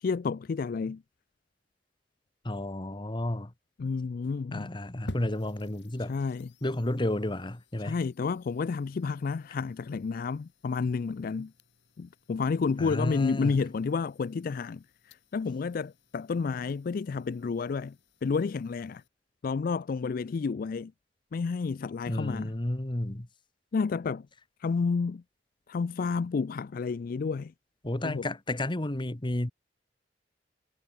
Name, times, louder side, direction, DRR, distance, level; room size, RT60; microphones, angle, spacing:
voice 1, 0.0-1.0 3.8-4.7 6.1-6.5 7.8-11.5 12.0-18.0 18.2-19.0 19.4-20.9 21.3-22.5 23.7-24.3 24.6-25.2 25.7-27.5 28.0-28.3, left 5 dB, 55° left, 0.4 m, -30 dB
voice 2, 2.4-3.5 4.5-6.1 6.6-8.0 12.8-13.6 22.1-23.3 27.8-29.5, left 1 dB, 30° left, 1.2 m, -32 dB
sound 1, 5.1-19.1, left 1 dB, 85° left, 3.0 m, -52 dB
head